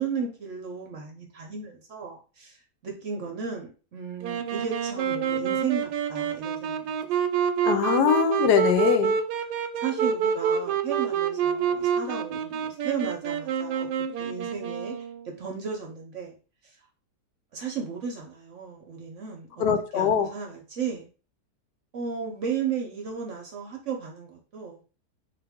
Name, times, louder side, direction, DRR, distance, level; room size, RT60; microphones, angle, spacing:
voice 1, 0.0-2.6 2.8-6.9 9.8-13.9 14.2-14.9 15.4-16.3 17.5-19.5 19.9-21.1 21.9-24.8, right 6 dB, 60° right, 1 dB, 0.9 m, -34 dB
Wind instrument woodwind instrument, 4.2-15.3, right 7 dB, 80° right, 1.1 m, -27 dB
voice 2, 7.6-9.2 19.6-20.3, left 8 dB, 75° left, 8 dB, 1.1 m, -22 dB
4.1 x 2.5 x 3.5 m, 0.36 s
omnidirectional pair, 1.8 m